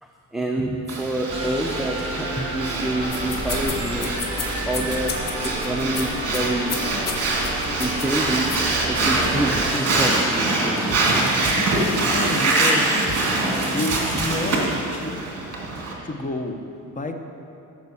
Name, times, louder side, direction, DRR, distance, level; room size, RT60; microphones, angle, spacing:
voice 1, 0.0-4.1 4.6-5.1 5.4-6.7 7.8-8.5 8.9-10.8, right 1 dB, ahead, -1 dB, 0.8 m, -27 dB
Breathing, 0.9-15.9, right 2 dB, 50° right, 2.3 m, -25 dB
sound 1, 1.3-14.8, right 1 dB, 15° right, 1.9 m, -30 dB
sound 2, 3.0-9.3, left 4 dB, 75° left, 1.7 m, -33 dB
voice 2, 11.7-13.0 13.7-15.4 16.0-17.1, left 2 dB, 25° left, 5 dB, 1.0 m, -30 dB
15.5 x 6.0 x 7.1 m, 2.9 s
cardioid pair, 120°, 33 cm